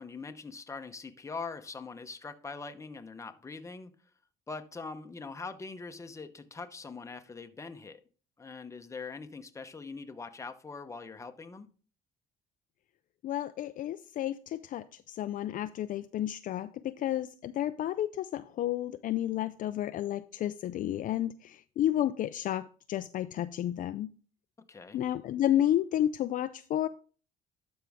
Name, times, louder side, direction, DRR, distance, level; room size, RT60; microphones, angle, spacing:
voice 1, 0.0-3.9 4.5-8.0 8.4-11.7 24.7-25.0, left 4 dB, 15° left, 0.9 m, -42 dB
voice 2, 13.2-24.1 24.9-26.9, left 12 dB, 50° left, 0.4 m, -31 dB
12.0 x 5.2 x 3.5 m
cardioid pair, 110°, 17 cm